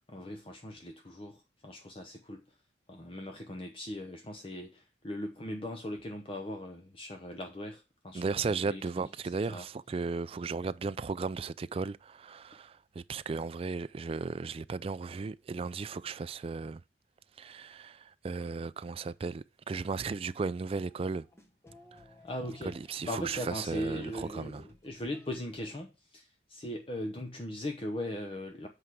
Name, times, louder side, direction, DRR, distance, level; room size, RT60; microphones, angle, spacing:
voice 1, 0.1-2.4 2.9-9.1 9.5-9.6 22.2-28.7, left 1 dB, 30° left, 0.8 m, -39 dB
voice 2, 8.1-16.8 17.4-21.3 22.6-24.6, right 4 dB, 30° right, 0.3 m, -35 dB
sound 1, 20.7-25.8, left 1 dB, 15° left, 1.3 m, -58 dB
8.0 x 4.9 x 4.7 m
head